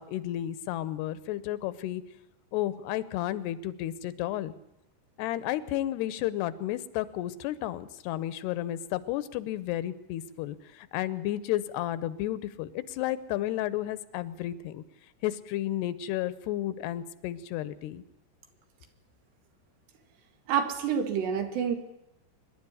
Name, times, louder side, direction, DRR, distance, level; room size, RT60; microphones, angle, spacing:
voice 1, 0.0-2.0 2.5-4.5 5.2-14.8 15.2-18.0, left 13 dB, 85° left, 16 dB, 2.9 m, -32 dB
voice 2, 20.5-21.8, right 7 dB, 90° right, 6 dB, 4.2 m, -28 dB
24.5 x 11.5 x 9.8 m, 0.87 s
omnidirectional pair, 4.7 m